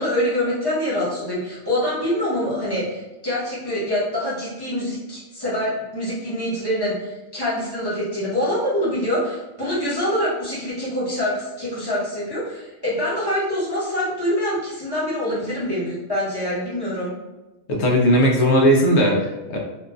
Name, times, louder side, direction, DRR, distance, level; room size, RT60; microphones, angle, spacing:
voice 1, 0.0-17.1, equal, 20° left, -9 dB, 0.9 m, -25 dB
voice 2, 17.7-19.6, equal, 75° left, -1 dB, 0.9 m, -17 dB
2.9 x 2.3 x 2.2 m, 1.1 s
omnidirectional pair, 1.2 m